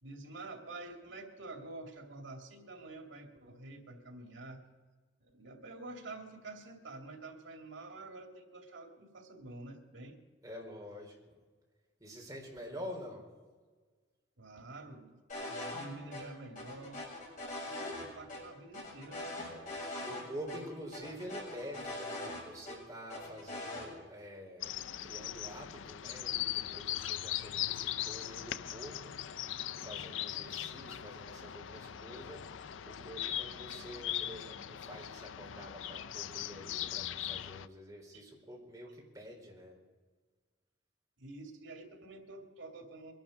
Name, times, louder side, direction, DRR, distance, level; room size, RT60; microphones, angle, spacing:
voice 1, 0.0-4.6 5.2-10.2 14.4-17.0 17.7-19.3 20.5-20.8 38.1-38.2 41.2-43.1, right 2 dB, 85° right, 3 dB, 2.5 m, -48 dB
voice 2, 10.4-11.3 12.0-13.3 19.4-24.7 25.0-29.2 29.8-32.5 32.9-39.8, equal, 20° right, -2 dB, 4.2 m, -47 dB
sound 1, 15.3-16.2 16.6-18.0 18.3-18.4 18.7-20.2 20.5-20.6 20.9-22.8 23.1-23.9, left 2 dB, 45° left, 6.9 m, -41 dB
sound 2, 24.6-37.7, left 11 dB, 80° left, 0.5 m, -40 dB
23.5 x 11.5 x 5.2 m, 1.4 s
head